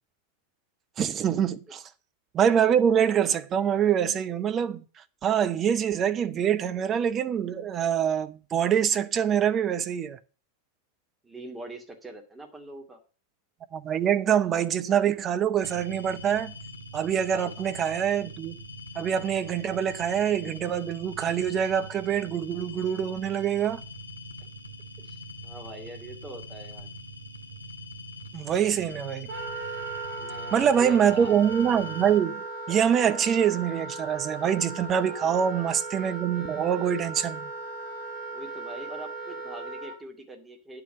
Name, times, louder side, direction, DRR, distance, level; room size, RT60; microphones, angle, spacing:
voice 1, 1.0-1.8 2.3-4.8 5.2-10.2 13.7-16.5 16.9-18.6 19.0-23.8 28.3-29.3 30.5-37.5, right 8 dB, 25° right, 0.8 m, -25 dB
voice 2, 11.2-13.0 17.2-17.5 25.0-26.9 30.1-31.4 35.1-35.4 38.3-40.8, right 1 dB, 10° right, 2.2 m, -43 dB
sound 1, 15.6-32.2, equal, 90° right, 1.2 m, -43 dB
Wind instrument woodwind instrument, 29.3-40.0, right 3 dB, 45° right, 3.1 m, -37 dB
10.0 x 4.9 x 7.7 m
figure-of-eight pair, 90°, 0 cm